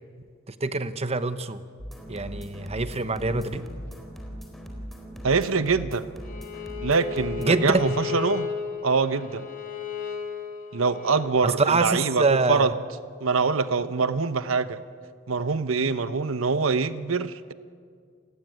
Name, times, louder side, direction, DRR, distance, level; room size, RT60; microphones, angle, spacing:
voice 1, 0.6-1.6 2.1-3.6 7.4-7.9 11.4-12.7, right 3 dB, 30° right, 11 dB, 1.0 m, -25 dB
sound 1, 1.8-7.4, equal, ahead, 4.3 m, -39 dB
voice 2, 5.2-6.1 6.8-8.5 8.8-9.5 10.7-12.7 13.2-14.8 15.3-17.5, right 4 dB, 75° right, 12 dB, 0.9 m, -24 dB
Bowed string instrument, 6.2-11.2, left 8 dB, 45° left, 4.3 m, -34 dB
29.0 x 20.5 x 9.4 m, 2.1 s
head